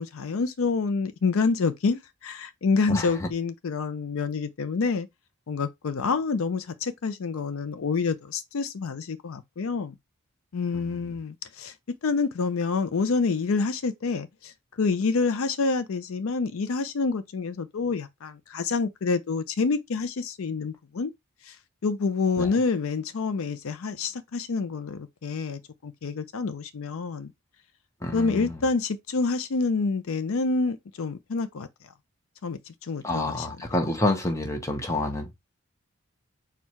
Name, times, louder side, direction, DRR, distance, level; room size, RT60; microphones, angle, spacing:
voice 1, 0.0-5.1 5.5-10.0 10.5-21.1 21.4-21.6 21.8-27.3 28.1-31.7 32.4-33.5, left 4 dB, 70° left, 0.5 m, -27 dB
voice 2, 2.9-3.3 10.7-10.9 22.4-22.5 28.0-28.5 33.0-35.3, left 2 dB, 15° left, 0.8 m, -28 dB
4.5 x 2.3 x 4.3 m
head